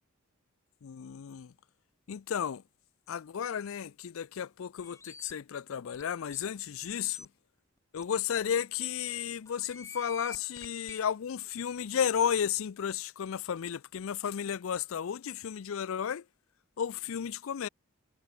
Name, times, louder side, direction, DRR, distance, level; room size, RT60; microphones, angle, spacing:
voice 1, 0.8-1.5 2.1-2.6 3.1-7.3 7.9-16.2 16.8-17.7, left 8 dB, 65° left, 0.4 m, -33 dB
sound 1, 4.8-5.3 5.9-6.0 6.3-6.4 6.9-7.3 8.0-8.1 8.4-8.5 9.5-11.0, left 3 dB, 15° left, 2.0 m, -47 dB
head